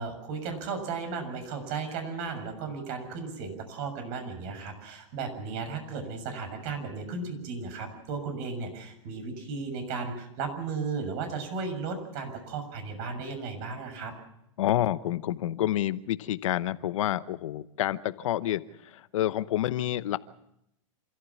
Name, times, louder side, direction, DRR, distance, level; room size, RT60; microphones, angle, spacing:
voice 1, 0.0-14.1, right 4 dB, 55° right, 6 dB, 6.9 m, -35 dB
voice 2, 14.6-20.2, left 13 dB, 75° left, 14 dB, 0.9 m, -28 dB
27.5 x 14.5 x 7.2 m, 0.81 s
hypercardioid pair, 120°, 17 cm